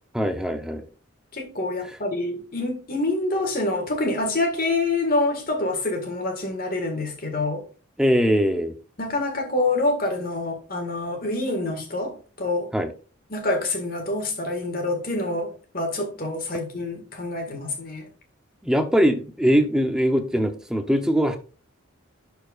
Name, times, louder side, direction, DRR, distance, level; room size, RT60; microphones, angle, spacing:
voice 1, 0.1-0.8 8.0-8.7 12.7-12.9 18.6-21.4, equal, 5° right, 0.7 m, -21 dB
voice 2, 1.3-7.6 9.0-12.7 13.3-18.1, left 2 dB, 45° left, 1.8 m, -26 dB
11.5 x 4.6 x 2.4 m
head